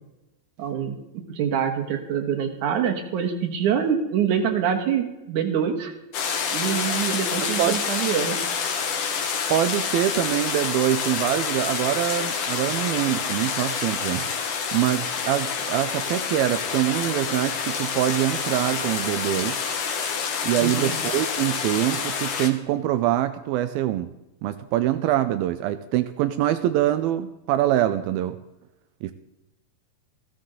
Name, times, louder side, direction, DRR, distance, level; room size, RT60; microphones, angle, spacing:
voice 1, 0.6-1.0 1.3-5.9 6.5-8.4 20.6-20.9, right 8 dB, 65° right, 5 dB, 2.2 m, -25 dB
sound 1, 6.1-22.5, left 6 dB, 60° left, 2.5 m, -28 dB
voice 2, 9.5-14.3 14.7-19.7 20.4-24.1 24.4-28.4 29.0-29.1, right 13 dB, 90° right, 11 dB, 2.1 m, -24 dB
15.5 x 14.0 x 3.9 m, 0.95 s
omnidirectional pair, 4.9 m